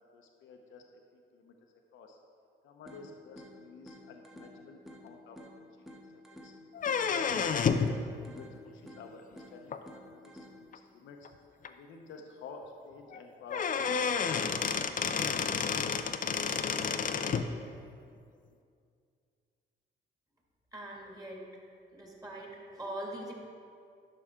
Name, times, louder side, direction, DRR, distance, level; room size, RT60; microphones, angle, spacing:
voice 1, 0.1-1.5 1.9-2.2 2.6-6.5 6.9-11.3 11.7-14.8, left 4 dB, 75° left, 3 dB, 0.8 m, -51 dB
sound 1, 2.9-10.9, left 1 dB, ahead, 1.2 m, -52 dB
sound 2, 6.7-7.9 9.7-9.8 10.7-10.8 11.2-11.3 11.6-11.7 13.1-13.2 13.5-17.5, left 6 dB, 40° left, 0.5 m, -30 dB
voice 2, 20.7-21.4 21.9-23.3, right 1 dB, 20° right, -3 dB, 2.3 m, -42 dB
11.0 x 6.1 x 3.7 m, 2.4 s
cardioid pair, 90°, 20 cm